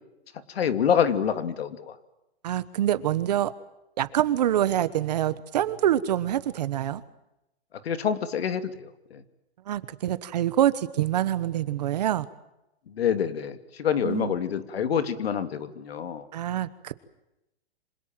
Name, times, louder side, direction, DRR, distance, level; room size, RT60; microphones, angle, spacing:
voice 1, 0.5-2.0 7.8-9.2 12.9-16.3, left 8 dB, 70° left, 10 dB, 2.7 m, -27 dB
voice 2, 2.4-3.5 4.0-7.0 9.7-12.3 14.0-14.3 16.3-16.9, right 11 dB, 40° right, 15 dB, 1.1 m, -25 dB
27.0 x 26.0 x 7.6 m, 0.91 s
hypercardioid pair, 175°, 32 cm